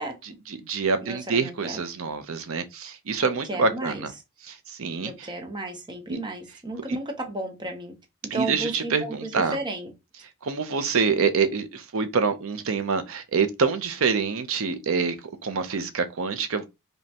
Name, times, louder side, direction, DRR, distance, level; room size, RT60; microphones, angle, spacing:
voice 1, 0.2-4.1 4.4-5.3 6.1-6.2 8.3-9.6 10.4-15.2 15.4-16.7, right 5 dB, 65° right, 0.6 m, -26 dB
voice 2, 1.0-1.8 3.2-4.1 5.0-7.9 8.3-9.9, right 2 dB, 20° right, 0.7 m, -33 dB
5.1 x 2.2 x 2.8 m
head